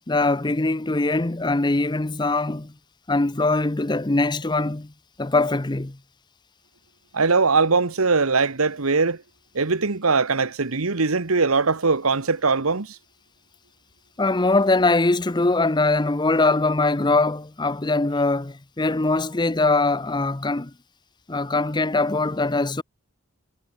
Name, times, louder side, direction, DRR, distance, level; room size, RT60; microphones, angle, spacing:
voice 1, 0.1-2.7 3.1-4.9 5.2-6.0 14.2-20.7 21.3-22.8, left 2 dB, 20° left, 0.7 m, -22 dB
voice 2, 7.1-9.2 9.5-13.0, right 4 dB, 80° right, 1.3 m, -21 dB
head